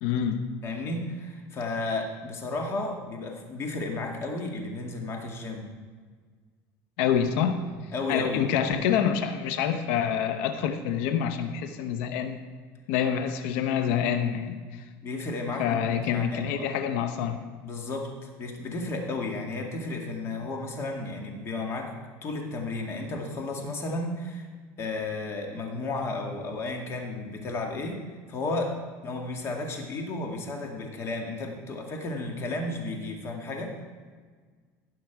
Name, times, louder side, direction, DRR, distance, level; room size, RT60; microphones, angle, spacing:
voice 1, 0.0-0.5 7.0-7.6 8.1-12.4 12.9-14.8 15.6-17.4, left 8 dB, 80° left, 8 dB, 0.8 m, -27 dB
voice 2, 0.6-5.7 7.9-8.5 15.0-16.7 17.6-21.9 22.2-24.5 24.8-28.0 28.3-28.7 29.0-33.7, left 2 dB, 40° left, 2 dB, 2.0 m, -33 dB
15.5 x 6.1 x 4.7 m, 1.5 s
supercardioid pair, 120°, 7 cm